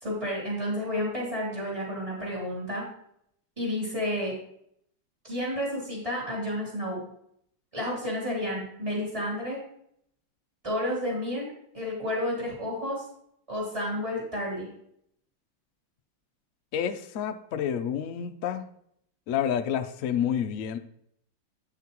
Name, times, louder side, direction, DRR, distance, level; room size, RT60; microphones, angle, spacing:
voice 1, 0.0-2.8 3.6-4.3 5.2-7.0 7.7-9.6 10.6-13.0 13.5-14.7, left 1 dB, 15° right, -6 dB, 3.1 m, -31 dB
voice 2, 16.7-18.6 19.3-20.8, left 9 dB, 80° left, 8 dB, 0.7 m, -29 dB
9.1 x 5.9 x 3.0 m, 0.71 s
omnidirectional pair, 2.1 m